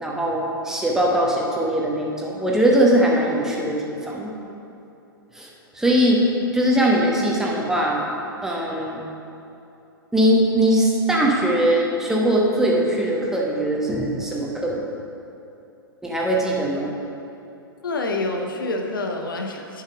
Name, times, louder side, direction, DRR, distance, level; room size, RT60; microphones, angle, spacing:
voice 1, 0.0-4.3 5.3-5.5 5.7-6.2 6.5-8.0 8.4-9.1 10.1-14.8 16.0-16.9, right 1 dB, 5° right, -3 dB, 1.3 m, -21 dB
voice 2, 17.8-19.8, left 2 dB, 65° left, 3 dB, 0.9 m, -27 dB
10.5 x 5.8 x 5.2 m, 2.7 s
figure-of-eight pair, 105°, 12 cm